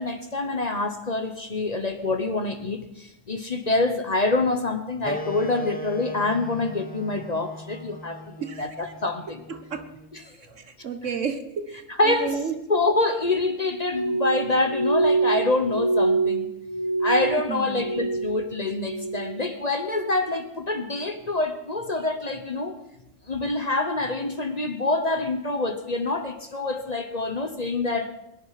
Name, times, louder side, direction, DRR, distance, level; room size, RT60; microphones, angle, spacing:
voice 1, 0.0-9.4 10.1-10.3 11.9-12.4 12.7-16.5 17.0-22.7 23.3-28.1, left 2 dB, 35° left, 7 dB, 1.2 m, -26 dB
Wind instrument woodwind instrument, 5.0-10.2, equal, 10° left, 1.0 m, -38 dB
voice 2, 9.5-9.8 10.6-11.7 12.1-12.6 17.5-17.8, right 6 dB, 70° right, 8 dB, 1.6 m, -31 dB
Glass, 13.8-18.4 18.7-19.4 19.8-20.3 20.9-21.2, right 3 dB, 80° left, 1.6 m, -26 dB
22.0 x 10.5 x 5.9 m, 0.89 s
omnidirectional pair, 1.3 m